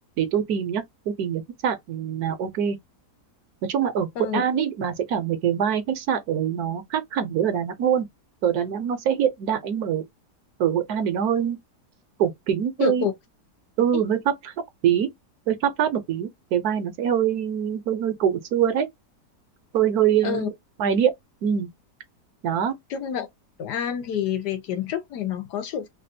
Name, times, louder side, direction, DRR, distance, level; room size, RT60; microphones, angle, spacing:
voice 1, 0.2-2.8 3.6-8.1 8.4-10.0 10.6-11.6 12.2-13.1 13.8-14.5 14.8-15.1 15.5-18.9 19.7-20.5 20.8-21.1 21.4-21.7 22.4-22.7, right 9 dB, 70° right, 1.1 m, -24 dB
voice 2, 12.8-13.1 20.2-20.5 22.9-23.3 23.6-25.9, left 8 dB, 80° left, 1.4 m, -28 dB
3.3 x 2.4 x 2.6 m
omnidirectional pair, 1.8 m